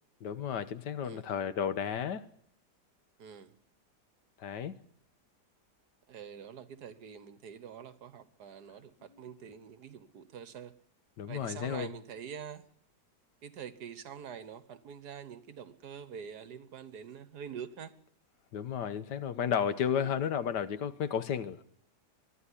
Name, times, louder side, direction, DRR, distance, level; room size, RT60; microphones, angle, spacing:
voice 1, 0.2-2.3 4.4-4.8 11.2-11.9 18.5-21.6, left 8 dB, 85° left, 1.7 m, -33 dB
voice 2, 3.2-3.5 6.1-10.7 11.3-12.7 13.4-18.0 19.9-20.1, right 7 dB, 70° right, 1.6 m, -45 dB
23.0 x 12.0 x 9.9 m
omnidirectional pair, 1.8 m